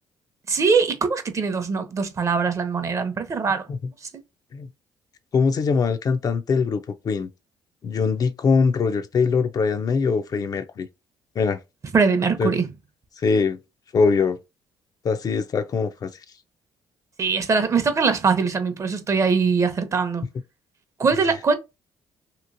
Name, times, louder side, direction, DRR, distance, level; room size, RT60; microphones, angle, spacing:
voice 1, 0.5-3.6 11.9-12.7 17.2-20.3 21.0-21.5, right 5 dB, 35° right, 0.6 m, -22 dB
voice 2, 5.3-7.3 7.8-10.9 11.4-11.6 12.4-12.5 13.2-13.6 13.9-14.4 15.0-16.1, left 5 dB, 45° left, 0.4 m, -22 dB
2.9 x 2.9 x 2.6 m
cardioid pair, 85°, 9 cm